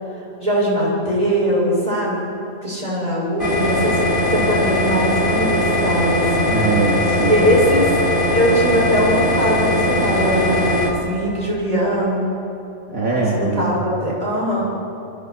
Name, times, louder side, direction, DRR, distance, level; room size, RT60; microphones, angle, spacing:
voice 1, 0.4-2.2 2.6-4.0 4.3-6.5 7.2-7.8 8.3-12.3 13.4-14.6, equal, 25° right, -5 dB, 7.5 m, -20 dB
sound 1, 3.4-10.9, left 1 dB, 35° left, 3.4 m, -19 dB
voice 2, 6.5-7.7 12.9-13.8, right 2 dB, 60° right, -5 dB, 3.3 m, -21 dB
28.5 x 23.5 x 4.9 m, 2.9 s
omnidirectional pair, 1.6 m